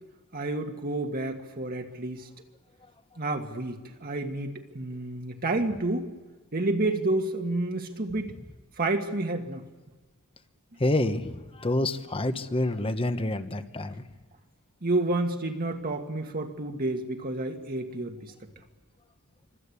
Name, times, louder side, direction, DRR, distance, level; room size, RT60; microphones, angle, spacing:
voice 1, 0.3-2.3 3.2-6.1 6.5-8.3 8.8-9.6 14.8-18.3, right 2 dB, 40° right, 3 dB, 1.6 m, -30 dB
voice 2, 10.8-14.0, left 1 dB, 25° left, 10 dB, 1.2 m, -28 dB
26.5 x 25.0 x 8.5 m, 1.3 s
head